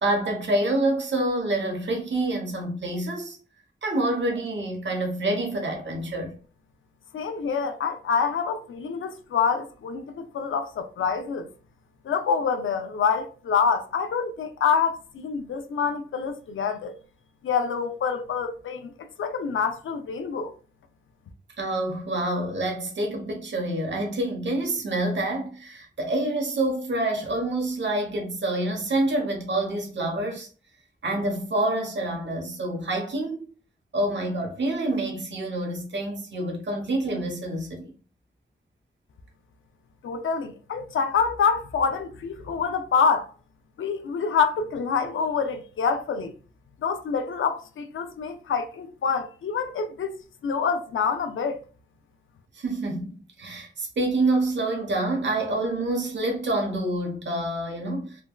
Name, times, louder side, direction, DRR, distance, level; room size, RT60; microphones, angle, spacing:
voice 1, 0.0-3.4 3.8-6.3 21.6-30.5 31.0-33.4 33.9-37.9 52.5-58.2, right 1 dB, 65° right, 0.9 m, -27 dB
voice 2, 7.1-11.5 12.0-16.9 17.4-18.9 19.2-20.5 40.0-43.3 43.8-46.3 46.8-50.1 50.4-51.6, left 6 dB, 80° left, 0.4 m, -26 dB
3.3 x 2.2 x 2.2 m
wide cardioid pair, 75°, 20 cm